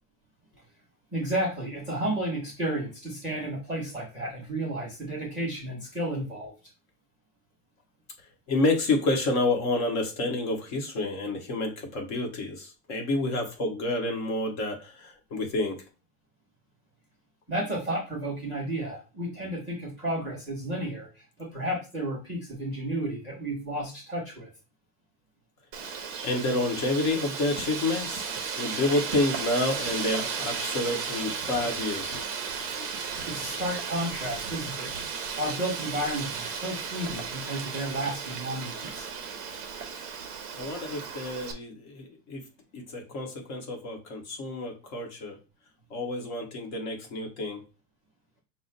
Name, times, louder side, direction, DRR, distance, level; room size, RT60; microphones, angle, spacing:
voice 1, 1.1-6.5 17.5-24.5 33.3-39.1, right 1 dB, ahead, -14 dB, 0.3 m, -32 dB
voice 2, 8.5-15.8 26.2-28.3 28.6-32.2 32.6-32.9 40.6-42.4 42.7-45.4 45.9-47.6, left 2 dB, 35° left, 2 dB, 1.2 m, -29 dB
Wind, 25.7-41.5, right 6 dB, 35° right, 0.6 m, -35 dB
5.8 x 2.1 x 3.9 m, 0.32 s
supercardioid pair, 170°, 47 cm